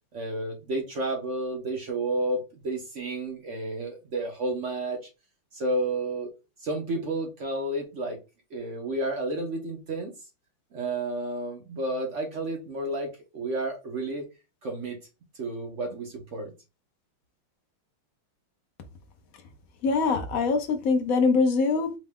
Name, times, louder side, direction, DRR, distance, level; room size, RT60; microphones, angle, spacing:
voice 1, 0.1-5.0 5.5-6.3 6.6-8.2 8.5-10.1 10.7-14.3 14.6-15.0 15.3-16.5, right 2 dB, 65° right, 0.7 m, -31 dB
voice 2, 19.8-22.0, left 4 dB, 65° left, 0.8 m, -23 dB
5.0 x 2.2 x 3.6 m
omnidirectional pair, 2.3 m